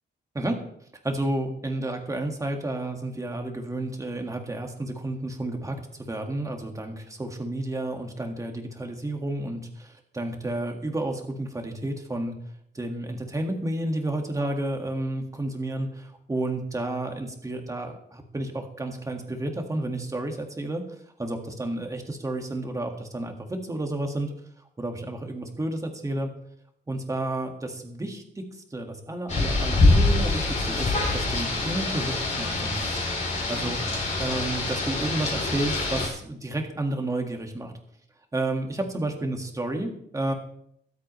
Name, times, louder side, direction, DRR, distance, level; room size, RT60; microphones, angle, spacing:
voice 1, 1.0-5.8 6.1-12.3 12.8-20.8 21.2-24.3 24.8-26.3 26.9-28.4 28.7-33.0 33.5-33.8 34.2-37.7 38.3-40.3, right 1 dB, 15° right, 3 dB, 1.8 m, -31 dB
Rain, 29.3-36.1, left 2 dB, 40° left, 3.7 m, -25 dB
23.0 x 8.2 x 3.2 m, 0.71 s
wide cardioid pair, 145°, 19 cm